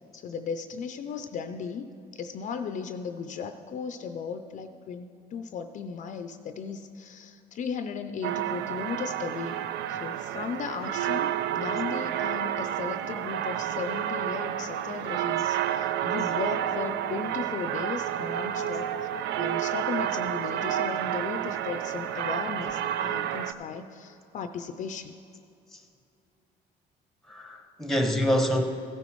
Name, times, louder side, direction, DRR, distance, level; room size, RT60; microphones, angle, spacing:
voice 1, 0.1-9.6 9.9-19.1 19.4-25.1, left 6 dB, 45° left, 8 dB, 0.4 m, -36 dB
sound 1, 8.2-23.5, right 11 dB, 80° right, 0.4 m, -30 dB
voice 2, 23.2-23.6 25.7-25.8 27.3-28.7, equal, ahead, 5 dB, 1.0 m, -28 dB
15.5 x 9.6 x 3.1 m, 2.7 s
cardioid pair, 110°, 17 cm